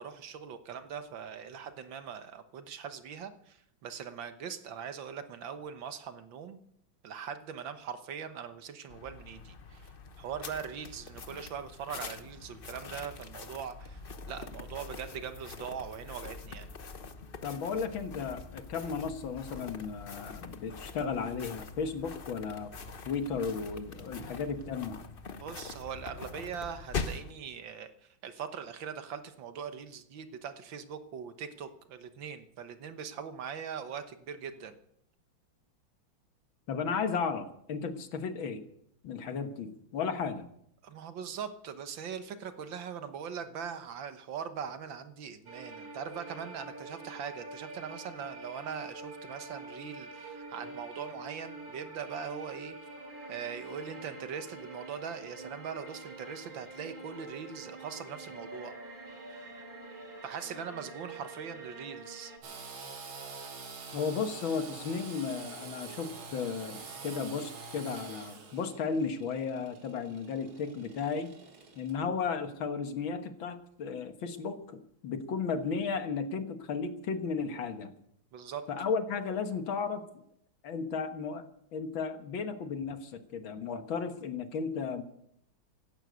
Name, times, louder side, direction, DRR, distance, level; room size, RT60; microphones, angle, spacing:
voice 1, 0.0-6.6 7.0-9.9 10.2-16.7 25.4-34.8 40.8-52.8 53.3-58.7 59.3-59.5 60.2-62.3 78.3-78.7, right 7 dB, 70° right, 9 dB, 1.8 m, -41 dB
sound 1, 8.9-27.3, left 4 dB, 40° left, 0.8 m, -44 dB
voice 2, 17.4-22.7 23.0-25.0 36.7-38.6 39.0-40.5 63.9-71.3 71.8-77.9 78.7-80.0 80.6-81.5 81.7-85.0, left 5 dB, 75° left, 8 dB, 2.2 m, -34 dB
sound 2, 45.5-62.4, right 2 dB, 45° right, 3.0 m, -46 dB
Engine / Sawing, 62.4-71.9, right 4 dB, 85° right, 2.9 m, -46 dB
16.0 x 12.0 x 6.4 m, 0.71 s
omnidirectional pair, 2.2 m